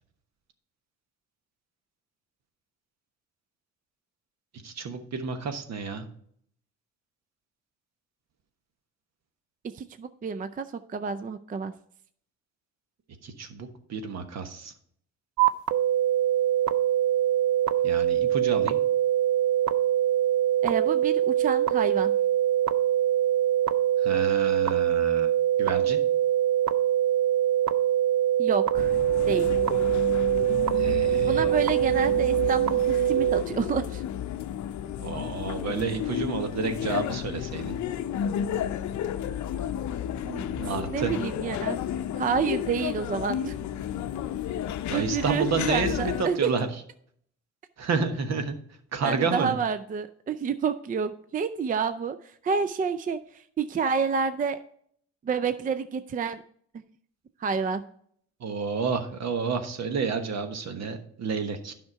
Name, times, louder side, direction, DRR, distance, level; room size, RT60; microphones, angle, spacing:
voice 1, 4.6-6.1 13.2-14.7 17.8-18.8 24.0-25.3 25.6-26.0 30.7-31.5 35.0-37.8 40.5-41.1 44.9-46.7 47.8-48.6 48.9-49.5 58.4-61.7, right 5 dB, 60° right, 7 dB, 1.3 m, -30 dB
voice 2, 9.7-11.7 20.6-22.1 28.4-28.9 29.3-29.5 31.2-34.0 40.2-41.8 42.2-43.5 44.9-46.5 49.0-54.6 55.2-56.4 57.4-57.8, right 6 dB, 30° right, 11 dB, 0.4 m, -29 dB
sound 1, 15.4-33.4, right 11 dB, 75° right, 0.6 m, -23 dB
sound 2, 28.7-46.2, left 10 dB, 70° left, 0.6 m, -32 dB
9.6 x 5.8 x 4.6 m, 0.64 s
cardioid pair, 90°, 30 cm